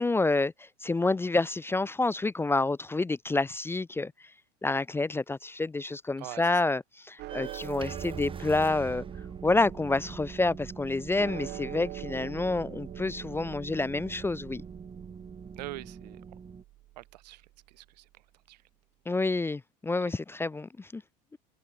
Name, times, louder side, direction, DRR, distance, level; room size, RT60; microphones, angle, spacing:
voice 1, 0.0-4.1 4.6-9.0 9.4-14.6 19.1-21.0, left 3 dB, 10° left, 0.5 m, -28 dB
voice 2, 6.2-6.6 15.6-16.2 17.0-17.4 17.7-18.1 18.5-18.6 20.0-20.1, right 17 dB, 80° right, 1.1 m, -43 dB
sound 1, 7.2-17.6, right 17 dB, 55° right, 1.8 m, -45 dB
sound 2, 7.3-16.6, right 6 dB, 25° right, 2.7 m, -43 dB
hypercardioid pair, 85°, 21 cm